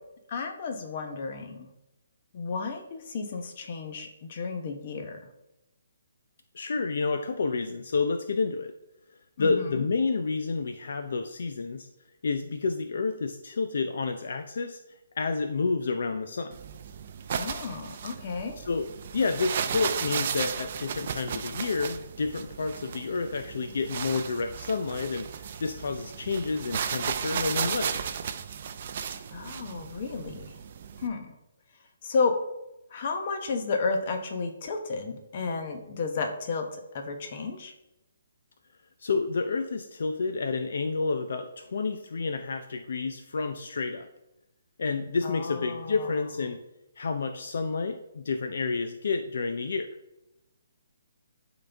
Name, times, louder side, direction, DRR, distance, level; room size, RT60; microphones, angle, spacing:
voice 1, 0.3-1.7 2.3-5.2 9.4-9.8 17.4-18.6 29.3-30.6 31.0-31.3 32.0-32.3 32.9-37.7 45.2-46.1, left 4 dB, 35° left, 5 dB, 0.9 m, -32 dB
voice 2, 6.5-8.7 9.4-11.9 12.2-14.8 15.2-16.5 18.6-18.9 19.1-28.0 39.0-44.1 44.8-46.6 47.0-49.9, left 4 dB, 65° left, 7 dB, 0.5 m, -29 dB
sound 1, 16.5-31.1, right 7 dB, 40° right, 0.5 m, -35 dB
11.5 x 4.0 x 3.4 m, 0.91 s
hypercardioid pair, 170°, 0 cm